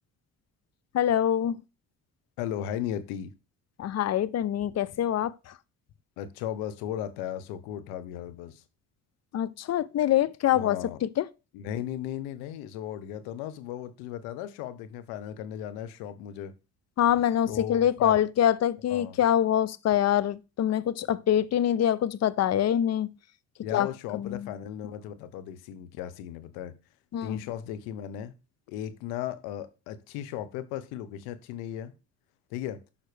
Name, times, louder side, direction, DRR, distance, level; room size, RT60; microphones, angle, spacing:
voice 1, 0.9-1.6 3.8-5.5 9.3-10.8 11.0-11.2 17.0-23.1 23.7-23.9 24.1-24.5 27.1-27.4, left 10 dB, 45° left, 0.6 m, -25 dB
voice 2, 2.4-3.3 6.2-8.6 10.5-11.0 11.5-16.5 17.5-18.2 18.9-19.2 23.6-26.7 27.2-28.3 28.7-31.9 32.5-32.8, left 10 dB, 90° left, 0.9 m, -36 dB
6.9 x 5.7 x 3.3 m
supercardioid pair, 75°, 35 cm